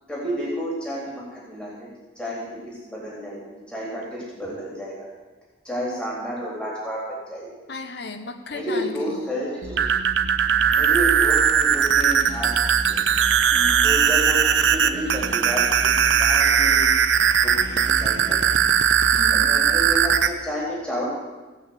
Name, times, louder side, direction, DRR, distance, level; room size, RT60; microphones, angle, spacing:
voice 1, 0.1-1.9 2.1-5.1 5.6-7.5 8.5-9.9 10.6-13.1 13.8-16.9 17.4-18.4 19.3-21.1, equal, 5° left, -5 dB, 3.4 m, -31 dB
voice 2, 7.7-9.2 13.5-13.9 19.1-19.5, left 3 dB, 65° left, 7 dB, 1.2 m, -35 dB
sound 1, 9.6-20.3, right 7 dB, 85° right, 0.8 m, -19 dB
17.0 x 6.1 x 8.1 m, 1.2 s
head